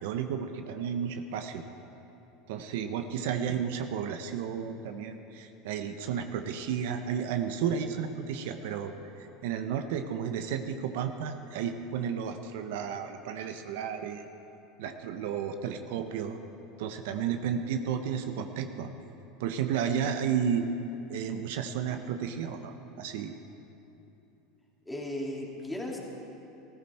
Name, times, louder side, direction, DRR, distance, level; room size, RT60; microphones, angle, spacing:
voice 1, 0.0-1.6 2.5-14.3 14.8-16.4 16.8-18.9 19.4-20.7 21.1-23.3, right 8 dB, 75° right, 7 dB, 0.7 m, -32 dB
voice 2, 24.9-26.0, left 1 dB, 5° left, -2 dB, 2.5 m, -36 dB
15.0 x 14.0 x 4.3 m, 2.9 s
hypercardioid pair, 95°, 0 cm